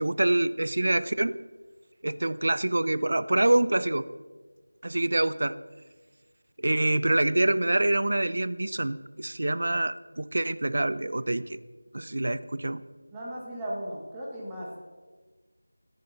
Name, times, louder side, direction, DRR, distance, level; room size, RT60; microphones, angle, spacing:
voice 1, 0.0-1.4 2.0-4.1 4.8-5.6 6.6-11.6 11.9-12.8, right 1 dB, 45° right, 15 dB, 0.7 m, -26 dB
voice 2, 13.1-14.8, right 1 dB, 5° right, -5 dB, 1.4 m, -36 dB
28.0 x 11.0 x 4.0 m, 1.4 s
figure-of-eight pair, 180°, 0 cm